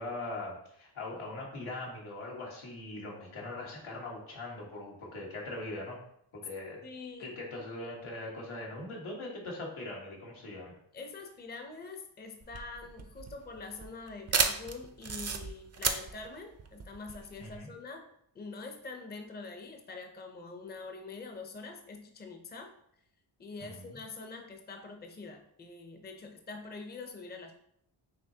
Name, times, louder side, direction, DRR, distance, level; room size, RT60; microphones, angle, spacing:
voice 1, 0.0-6.0 6.3-6.8 7.2-10.7 17.4-17.7 23.6-23.9, left 2 dB, 90° left, -3 dB, 1.4 m, -41 dB
voice 2, 6.8-7.3 10.9-18.1 18.3-22.7 23.4-27.5, left 3 dB, 20° left, 4 dB, 0.5 m, -45 dB
sound 1, 12.4-17.6, right 5 dB, 35° right, 0.5 m, -33 dB
5.8 x 3.1 x 2.7 m, 0.72 s
cardioid pair, 85°, 48 cm